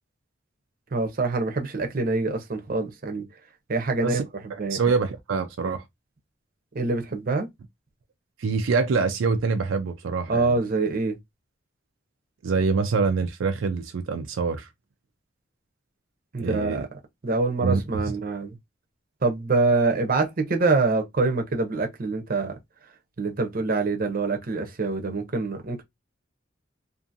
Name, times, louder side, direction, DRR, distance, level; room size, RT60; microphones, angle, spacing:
voice 1, 0.9-3.3 3.7-4.2 4.6-4.8 6.7-7.5 10.3-11.2 16.3-16.8 17.2-18.6 19.2-22.6 23.2-25.8, right 3 dB, 50° right, 0.7 m, -25 dB
voice 2, 4.5-5.8 8.4-10.5 12.4-14.7 16.4-16.9 17.6-17.8, right 4 dB, 85° right, 0.4 m, -25 dB
2.6 x 2.6 x 2.5 m
head